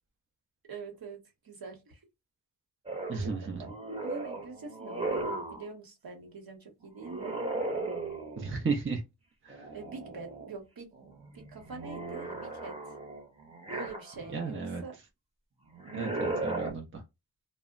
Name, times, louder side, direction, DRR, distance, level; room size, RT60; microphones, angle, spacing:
voice 1, 0.7-2.0 3.1-3.3 4.0-7.3 9.7-11.1 11.3-12.8 13.7-15.0, right 4 dB, 60° right, 1.1 m, -44 dB
sound 1, 2.9-5.7 7.0-8.6 9.5-10.5 10.9-14.4 15.7-16.7, right 2 dB, 15° right, 1.0 m, -37 dB
voice 2, 3.1-3.6 8.4-9.0 9.4-9.7 14.3-14.8 15.9-17.0, right 4 dB, 30° right, 0.6 m, -34 dB
2.1 x 2.1 x 3.6 m
cardioid pair, 60°, 40 cm